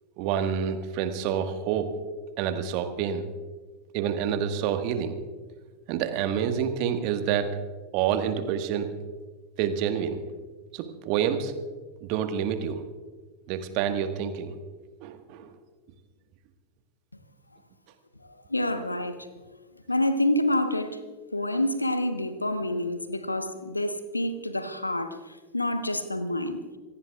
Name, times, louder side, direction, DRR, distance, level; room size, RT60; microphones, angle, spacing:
voice 1, 0.2-2.0 2.4-3.3 3.9-5.2 5.9-7.6 7.9-8.9 9.6-10.2 10.7-11.5 12.0-12.8 13.5-14.5 15.0-15.6, right 8 dB, 45° right, 7 dB, 1.6 m, -28 dB
voice 2, 18.2-19.2 19.9-21.0 21.3-26.8, left 1 dB, 85° left, 9 dB, 1.2 m, -28 dB
26.0 x 18.0 x 2.4 m, 1.4 s
figure-of-eight pair, 85°, 0 cm